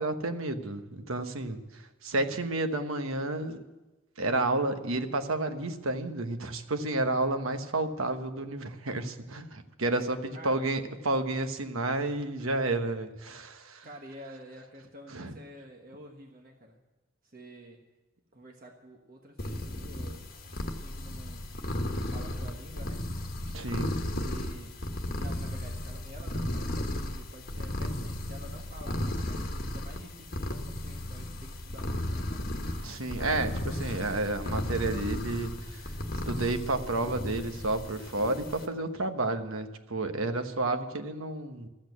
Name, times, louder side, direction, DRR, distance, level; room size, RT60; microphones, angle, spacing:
voice 1, 0.0-1.6 2.0-3.6 4.2-13.9 15.1-15.3 23.5-24.0 32.7-35.9 36.2-41.7, right 2 dB, 80° right, 7 dB, 1.2 m, -31 dB
voice 2, 10.3-10.7 13.8-16.8 17.3-17.8 18.3-21.4 21.9-23.0 24.1-24.7 25.1-32.5, right 1 dB, 45° right, 2 dB, 1.3 m, -49 dB
sound 1, 19.4-38.7, left 1 dB, 45° left, 1.4 m, -35 dB
13.0 x 8.5 x 9.2 m, 1.1 s
head